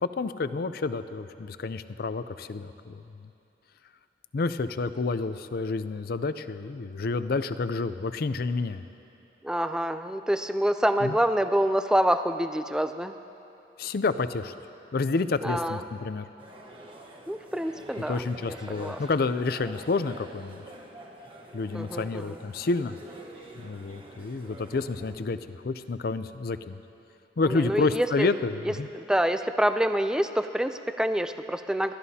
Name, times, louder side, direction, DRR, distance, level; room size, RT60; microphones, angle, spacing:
voice 1, 0.0-3.3 4.3-8.8 11.0-11.2 13.8-14.5 14.9-16.3 18.0-20.6 21.5-23.0 23.6-26.8 27.4-28.9, left 3 dB, 55° left, 12 dB, 0.5 m, -29 dB
voice 2, 9.4-13.2 15.4-15.8 17.3-19.0 21.7-22.4 27.5-28.3 28.6-31.9, equal, 5° right, 9 dB, 0.4 m, -27 dB
sound 1, 16.4-25.2, right 1 dB, 30° right, 1.2 m, -47 dB
30.0 x 13.0 x 2.8 m, 2.8 s
head